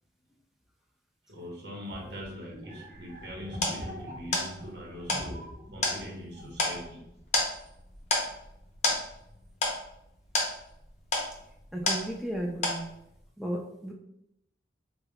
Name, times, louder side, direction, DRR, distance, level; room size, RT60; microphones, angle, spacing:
voice 1, 1.3-7.1, equal, 80° right, -2 dB, 0.9 m, -42 dB
sound 1, 1.9-6.0 6.3-6.9, equal, 45° right, 0.9 m, -44 dB
sound 2, 2.9-12.4 12.6-13.2, left 2 dB, 40° left, 0.6 m, -31 dB
voice 2, 11.7-12.8 13.4-13.9, right 1 dB, ahead, -1 dB, 0.3 m, -34 dB
5.1 x 2.2 x 2.2 m, 0.77 s
head